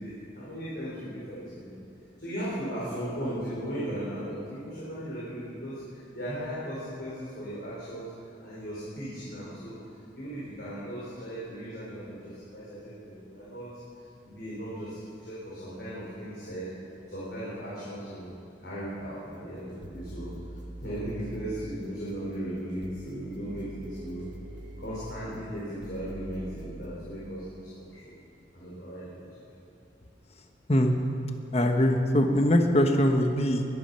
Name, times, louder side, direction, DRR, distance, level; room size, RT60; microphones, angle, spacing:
voice 1, 0.0-1.7 2.2-8.1 8.4-9.8 10.1-13.7 14.2-16.7 17.0-18.3 18.6-20.3 20.8-24.3 24.8-28.1 28.5-29.2, equal, 60° left, -9 dB, 4.7 m, -37 dB
sound 1, 19.2-26.9, right 1 dB, 70° right, 1.5 m, -44 dB
voice 2, 31.5-33.6, equal, 35° left, 4 dB, 1.2 m, -22 dB
22.5 x 10.5 x 5.7 m, 2.6 s
head